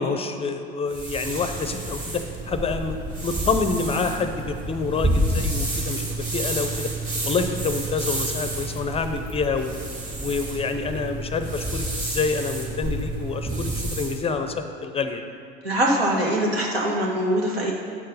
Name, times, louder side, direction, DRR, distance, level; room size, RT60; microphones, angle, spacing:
voice 1, 0.0-3.0 3.2-6.9 7.2-9.7 10.2-15.2, left 4 dB, 20° left, 8 dB, 0.5 m, -27 dB
sound 1, 0.9-14.2, right 1 dB, 25° right, 2.5 m, -29 dB
voice 2, 15.6-17.7, right 1 dB, 80° right, -2 dB, 1.7 m, -23 dB
8.7 x 6.5 x 5.3 m, 2.4 s
figure-of-eight pair, 75°, 30 cm